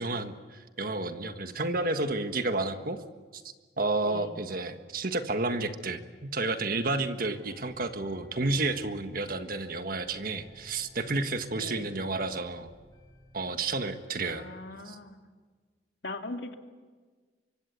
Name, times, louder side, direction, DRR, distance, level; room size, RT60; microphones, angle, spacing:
voice 1, 0.0-3.0 3.3-3.4 3.8-12.7 13.3-14.5 14.8-15.0, right 2 dB, 50° right, 8 dB, 1.6 m, -31 dB
voice 2, 4.0-4.4 11.6-11.8 14.2-15.2 16.0-16.5, left 2 dB, 70° left, 5 dB, 2.3 m, -40 dB
sound 1, 7.3-14.1, left 1 dB, 20° left, 5.0 m, -54 dB
25.0 x 24.0 x 8.3 m, 1.5 s
head